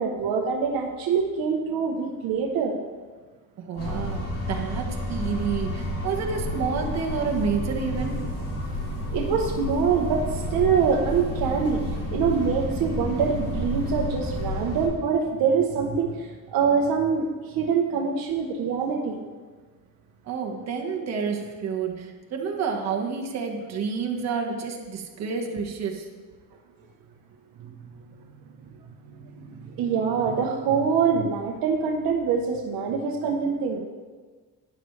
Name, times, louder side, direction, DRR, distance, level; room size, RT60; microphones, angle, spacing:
voice 1, 0.0-2.8 9.1-11.8 12.1-19.2 27.6-27.7 29.1-33.9, right 6 dB, 75° right, 1 dB, 1.0 m, -25 dB
voice 2, 3.6-8.2 20.2-26.1, right 5 dB, 50° right, 1 dB, 1.4 m, -29 dB
sound 1, 3.8-14.9, left 1 dB, 40° left, 3.1 m, -30 dB
12.0 x 9.9 x 3.3 m, 1.4 s
cardioid pair, 175°, 35 cm